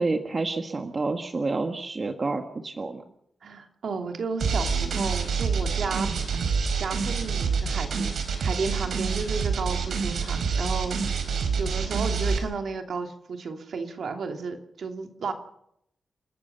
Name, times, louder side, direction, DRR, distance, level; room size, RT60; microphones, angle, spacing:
voice 1, 0.0-3.0, right 3 dB, 30° right, 6 dB, 1.5 m, -29 dB
voice 2, 3.4-6.3 6.8-11.0 11.6-15.3, right 4 dB, 65° right, 5 dB, 2.8 m, -33 dB
sound 1, 4.4-12.4, right 5 dB, 80° right, 4.3 m, -27 dB
29.0 x 13.5 x 6.9 m, 0.75 s
wide cardioid pair, 150°, 0 cm